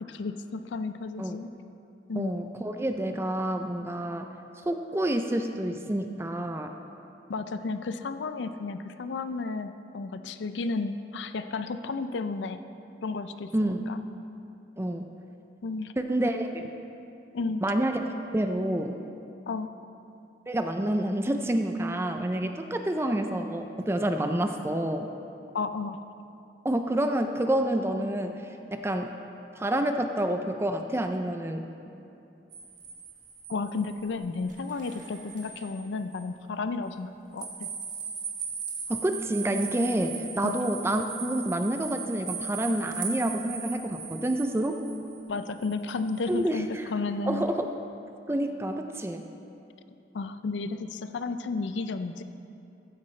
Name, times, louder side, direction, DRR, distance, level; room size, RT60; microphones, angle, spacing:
voice 1, 0.0-1.5 2.1-2.3 7.3-12.6 13.0-14.0 15.6-15.9 17.3-17.6 19.5-19.7 25.5-26.0 33.5-37.7 40.4-40.6 45.3-47.5 50.1-52.2, left 3 dB, 85° left, 10 dB, 0.4 m, -33 dB
voice 2, 2.2-4.3 4.7-6.7 13.5-13.8 14.8-15.1 16.0-16.7 17.6-18.1 18.3-19.0 20.5-25.1 26.6-28.4 28.7-29.1 29.6-31.7 38.9-44.8 46.3-46.8 47.3-47.7 48.3-49.2, right 1 dB, 15° right, 6 dB, 0.4 m, -28 dB
sound 1, 32.5-35.7 36.1-36.2 37.4-46.4, right 6 dB, 45° right, 1.3 m, -39 dB
15.0 x 9.5 x 3.2 m, 2.7 s
head